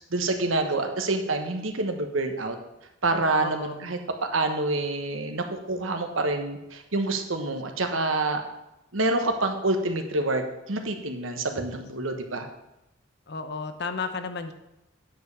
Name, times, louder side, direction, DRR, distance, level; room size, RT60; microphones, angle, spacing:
voice 1, 0.1-2.6 3.0-4.0 4.3-8.4 8.9-12.5, right 2 dB, 90° right, 5 dB, 1.2 m, -27 dB
voice 2, 3.4-3.9 13.3-14.5, left 4 dB, 60° left, 8 dB, 0.8 m, -33 dB
9.3 x 5.1 x 6.8 m, 0.90 s
head